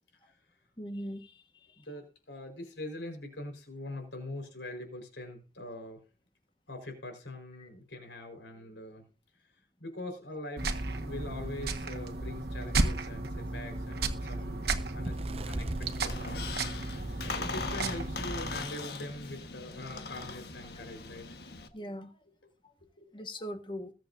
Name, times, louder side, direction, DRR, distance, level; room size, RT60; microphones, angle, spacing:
voice 1, 0.8-1.4 7.6-7.7 20.7-20.8 21.7-22.1 22.6-22.7 23.1-23.9, equal, 30° left, 7 dB, 1.5 m, -40 dB
voice 2, 1.7-6.0 6.7-9.1 9.8-15.2 15.4-16.6 17.2-21.3 23.0-23.1, left 1 dB, 85° left, 4 dB, 4.7 m, -43 dB
sound 1, 10.6-18.6, right 2 dB, 65° right, 1.5 m, -34 dB
Bird, 14.6-17.8 18.3-18.5 18.7-19.0 19.8-19.9, right 1 dB, 35° right, 0.7 m, -40 dB
Squeak, 15.9-21.7, left 4 dB, 65° left, 1.5 m, -40 dB
21.5 x 7.6 x 2.7 m, 0.35 s
head